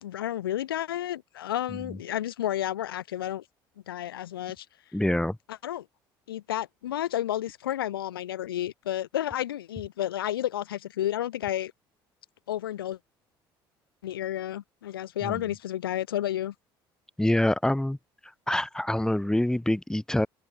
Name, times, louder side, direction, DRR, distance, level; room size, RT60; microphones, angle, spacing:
voice 1, 0.0-3.4 3.9-4.7 5.5-5.8 6.3-11.7 12.5-13.0 14.0-16.5, left 12 dB, 90° left, 0.5 m, -31 dB
voice 2, 4.9-5.4 15.2-15.4 17.2-18.0 18.5-20.3, left 1 dB, 5° left, 1.9 m, -25 dB
hypercardioid pair, 65°, 12 cm